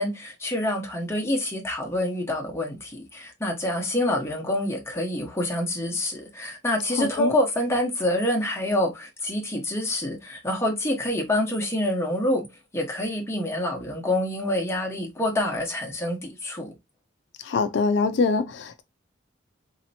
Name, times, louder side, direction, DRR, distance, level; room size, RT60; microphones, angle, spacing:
voice 1, 0.0-12.5 12.7-16.7, left 1 dB, 15° left, 0.9 m, -27 dB
voice 2, 7.0-7.3 17.4-18.8, left 4 dB, 70° left, 0.4 m, -24 dB
4.0 x 2.8 x 2.6 m
head